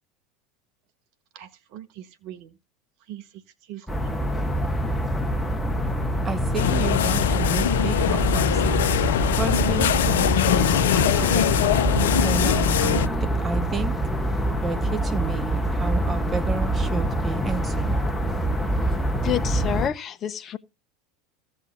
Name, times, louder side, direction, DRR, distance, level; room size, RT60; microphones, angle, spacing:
voice 1, 1.3-2.6 3.0-4.2, right 11 dB, 55° right, 1.3 m, -42 dB
sound 1, 3.9-19.9, right 1 dB, 10° left, 1.6 m, -25 dB
voice 2, 6.2-8.9 9.4-11.6 12.2-13.9 14.6-18.0, right 4 dB, 25° right, 1.0 m, -32 dB
sound 2, 6.5-13.1, left 11 dB, 70° left, 0.5 m, -22 dB
voice 3, 19.2-20.6, left 10 dB, 35° left, 1.1 m, -28 dB
15.5 x 6.7 x 3.8 m
figure-of-eight pair, 80°, 0 cm